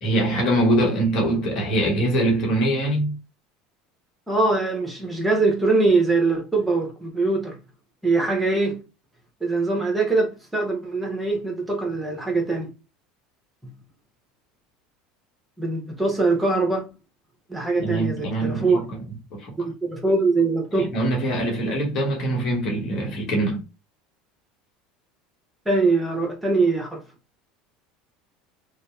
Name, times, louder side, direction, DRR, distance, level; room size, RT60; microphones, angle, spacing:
voice 1, 0.0-3.1 17.8-19.0 19.3-19.7 20.7-23.6, right 1 dB, 50° left, 1.0 m, -23 dB
voice 2, 4.3-7.6 8.0-8.8 9.4-12.7 13.6-13.7 15.6-16.8 17.5-18.8 19.8-20.9 25.7-27.0, right 3 dB, 10° right, 1.0 m, -22 dB
2.7 x 2.1 x 2.3 m
hypercardioid pair, 75°, 0 cm